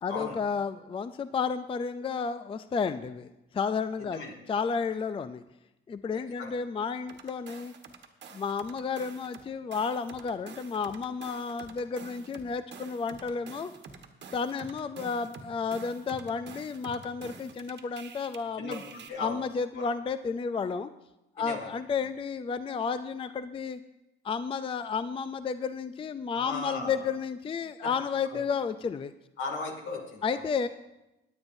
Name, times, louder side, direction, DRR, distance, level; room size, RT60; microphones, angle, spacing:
voice 1, 0.0-4.2 4.5-5.4 5.9-7.7 8.3-13.7 14.3-18.8 19.2-20.9 21.4-23.8 24.2-29.1 30.2-30.7, left 5 dB, 25° left, 12 dB, 0.4 m, -32 dB
sound 1, 7.1-9.4 9.7-18.4 18.7-19.1, right 5 dB, 60° right, 1.3 m, -48 dB
voice 2, 18.6-19.4 19.8-19.9 21.4-21.7 26.3-27.1 27.8-27.9 28.3-28.4 29.4-30.5, left 3 dB, 75° left, 1 dB, 2.5 m, -37 dB
21.0 x 8.8 x 2.7 m, 0.94 s
cardioid pair, 90°, 20 cm